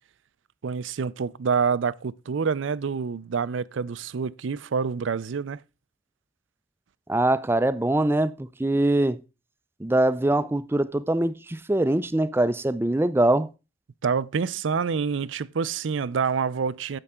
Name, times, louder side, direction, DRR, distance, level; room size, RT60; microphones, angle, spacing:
voice 1, 0.6-5.6 14.0-17.0, right 5 dB, 85° right, 0.5 m, -27 dB
voice 2, 7.1-9.2 9.8-13.5, right 1 dB, 10° right, 0.4 m, -23 dB
9.9 x 7.8 x 3.6 m
head